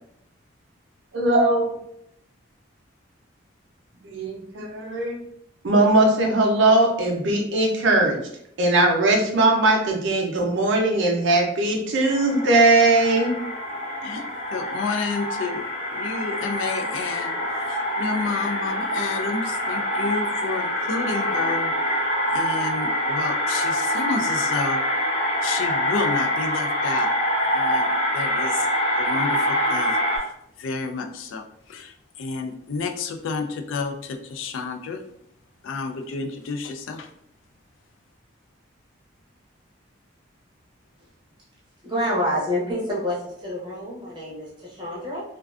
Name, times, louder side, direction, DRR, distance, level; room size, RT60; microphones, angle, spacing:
voice 1, 1.1-1.7 4.0-5.2 5.6-8.2 8.6-13.3, right 2 dB, 65° right, 2 dB, 0.5 m, -19 dB
sound 1, 12.0-30.2, equal, 30° left, 0.8 m, -25 dB
voice 2, 14.0-15.6 15.9-21.7 22.3-24.8 25.4-27.1 27.5-28.7 29.0-30.3 30.6-35.0 35.6-37.1, left 4 dB, 75° left, 6 dB, 0.3 m, -30 dB
voice 3, 41.8-45.2, equal, 25° right, -6 dB, 0.6 m, -27 dB
2.3 x 2.2 x 2.3 m, 0.75 s
head